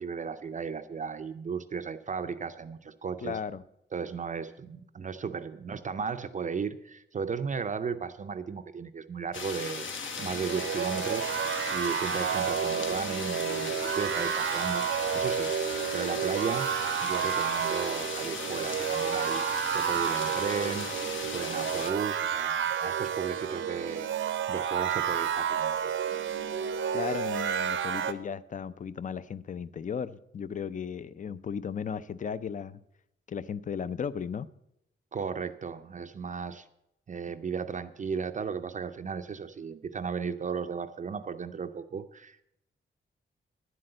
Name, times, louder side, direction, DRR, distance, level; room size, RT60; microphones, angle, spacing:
voice 1, 0.0-3.4 3.9-9.9 10.2-16.7 17.0-19.4 19.7-25.9 35.1-36.7 37.1-42.4, right 6 dB, 40° right, 8 dB, 0.5 m, -35 dB
voice 2, 3.2-3.6 26.9-32.8 33.3-34.5, left 7 dB, 40° left, 16 dB, 0.4 m, -35 dB
sound 1, 9.3-21.9, left 5 dB, 75° left, 1.4 m, -37 dB
sound 2, 10.2-28.1, right 8 dB, 75° right, 0.7 m, -30 dB
10.5 x 7.8 x 7.8 m, 0.79 s
wide cardioid pair, 160°, 20 cm